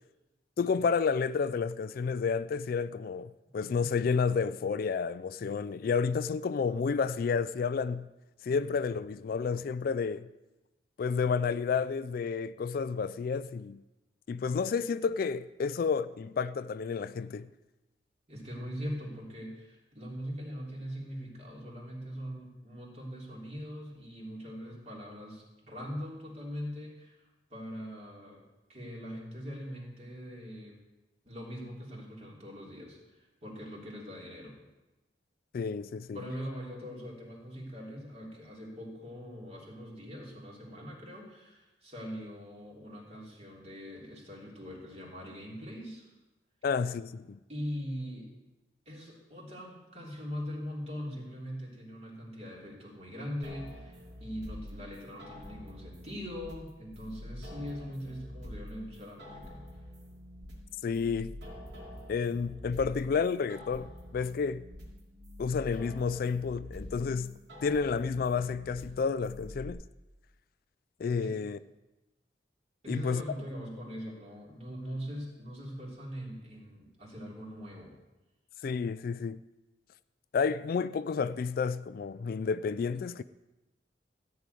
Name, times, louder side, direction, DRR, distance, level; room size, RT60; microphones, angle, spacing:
voice 1, 0.6-8.1 8.4-10.3 11.0-13.8 14.3-17.5 35.5-36.2 46.6-47.4 60.8-61.3 62.1-64.6 65.4-69.8 71.0-71.6 72.9-73.2 78.6-79.4 80.3-83.2, left 5 dB, 55° left, 0.3 m, -30 dB
voice 2, 18.3-27.2 27.5-28.4 28.7-30.8 31.2-34.6 36.1-46.1 47.5-48.3 48.8-59.6 71.2-71.4 72.8-78.0, equal, 40° right, 3.2 m, -41 dB
sound 1, 53.4-69.7, left 1 dB, 70° right, 2.7 m, -46 dB
14.0 x 4.9 x 9.1 m
head